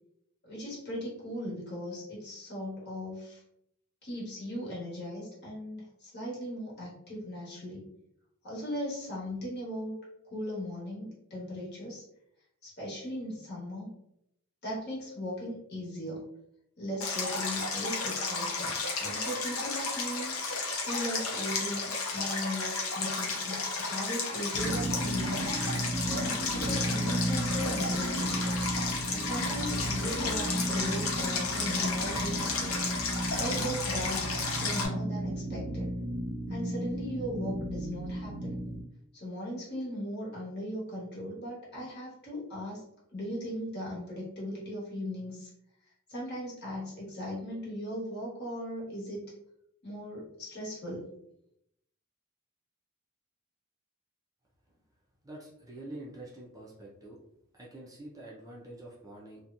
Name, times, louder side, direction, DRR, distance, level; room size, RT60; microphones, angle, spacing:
voice 1, 0.4-3.4 4.0-7.9 8.4-9.9 10.3-12.0 12.6-13.9 14.6-16.2 16.8-20.3 20.9-25.5 26.0-28.4 29.1-32.7 33.3-35.9 36.5-38.6 39.1-45.5 46.1-49.3 49.8-51.1, equal, 50° left, -6 dB, 1.2 m, -38 dB
Stream, 17.0-34.9, left 4 dB, 80° left, 0.6 m, -33 dB
sound 1, 24.5-38.8, right 1 dB, 90° right, 0.6 m, -34 dB
voice 2, 55.2-57.2 57.5-59.4, right 1 dB, 15° right, -4 dB, 0.4 m, -46 dB
2.8 x 2.1 x 2.5 m, 0.76 s
head